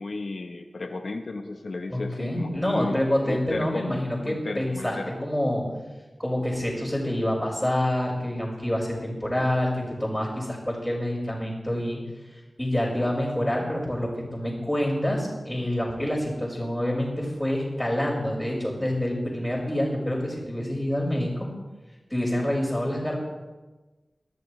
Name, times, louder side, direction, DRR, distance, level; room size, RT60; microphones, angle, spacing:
voice 1, 0.0-3.8 4.2-5.1, left 3 dB, 70° left, 5 dB, 1.0 m, -34 dB
voice 2, 1.9-5.7 6.2-12.0 12.6-21.5 22.1-23.2, left 1 dB, 10° left, -10 dB, 4.7 m, -27 dB
22.0 x 13.0 x 3.2 m, 1.2 s
wide cardioid pair, 85°, 0 cm